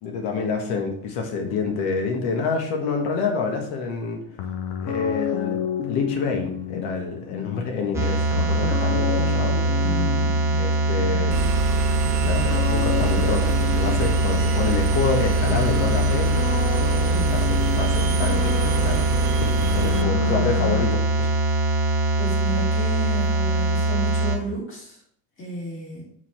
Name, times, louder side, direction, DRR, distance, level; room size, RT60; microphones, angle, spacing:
voice 1, 0.0-4.2 4.8-5.6 5.9-9.8 10.6-11.5 12.2-16.3 17.3-17.4 17.7-19.1 19.4-21.3, left 4 dB, 90° left, 2 dB, 1.6 m, -27 dB
sound 1, 4.4-20.9, left 8 dB, 70° left, 1.0 m, -31 dB
sound 2, 7.9-24.4, right 1 dB, 5° right, 0.8 m, -22 dB
voice 2, 9.8-10.3 17.0-17.4 20.2-20.5 22.2-25.0 25.4-26.1, right 2 dB, 30° left, -4 dB, 2.9 m, -32 dB
Engine, 11.3-20.0, right 8 dB, 65° right, 0.6 m, -29 dB
5.0 x 4.1 x 5.9 m, 0.64 s
cardioid pair, 150°, 41 cm